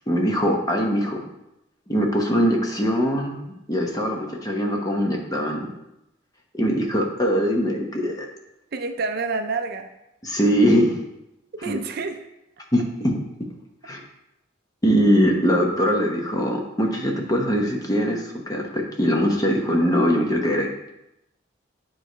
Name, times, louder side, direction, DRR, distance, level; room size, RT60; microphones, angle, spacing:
voice 1, 0.1-1.2 1.9-3.3 3.7-5.7 6.5-8.3 10.2-11.0 11.7-11.8 12.7-13.1 13.8-14.0 14.8-20.7, equal, 20° left, 0 dB, 0.9 m, -22 dB
voice 2, 8.7-9.9 11.6-12.3, right 3 dB, 55° right, 7 dB, 0.5 m, -28 dB
9.0 x 3.2 x 4.5 m, 0.87 s
head